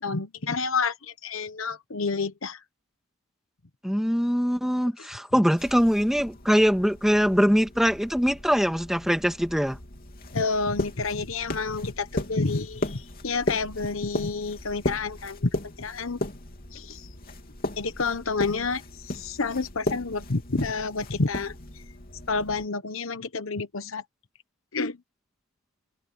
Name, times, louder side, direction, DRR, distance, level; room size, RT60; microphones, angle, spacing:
voice 1, 0.0-2.6 10.3-15.5 15.8-16.2 16.7-17.1 17.8-21.5 22.3-24.0 24.7-25.0, left 4 dB, 70° left, 1.1 m, -29 dB
voice 2, 3.8-9.8, equal, ahead, 2.0 m, -22 dB
sound 1, 5.6-22.7, left 1 dB, 45° left, 3.1 m, -36 dB
head